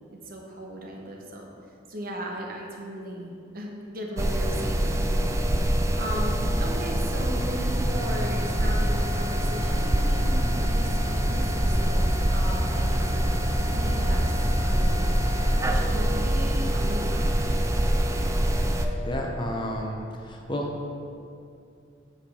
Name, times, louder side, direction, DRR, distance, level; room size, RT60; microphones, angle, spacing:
voice 1, 0.1-1.5 1.9-5.3 5.9-12.0 12.3-14.3 14.6-15.1 15.6-17.4, equal, 50° right, 0 dB, 1.1 m, -37 dB
sound 1, 4.2-18.9, right 1 dB, 15° right, 0.4 m, -24 dB
voice 2, 19.0-20.7, equal, 25° left, 0 dB, 0.8 m, -31 dB
8.5 x 5.1 x 4.9 m, 2.4 s
head